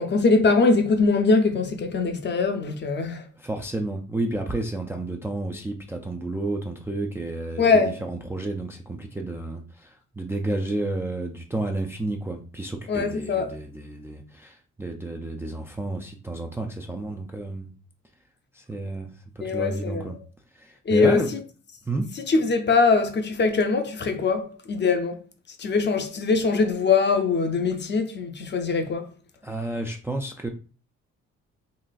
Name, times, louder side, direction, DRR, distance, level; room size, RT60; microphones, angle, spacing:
voice 1, 0.0-3.2 7.6-8.0 12.9-13.6 19.4-20.1 20.9-21.3 22.3-25.2 25.6-29.0, left 4 dB, 35° left, 0.5 m, -22 dB
voice 2, 3.4-17.7 18.5-20.2 20.5-21.3 21.9-22.1 29.4-30.5, right 2 dB, 10° right, 0.3 m, -31 dB
4.0 x 2.4 x 2.3 m
cardioid pair, 90°, 30 cm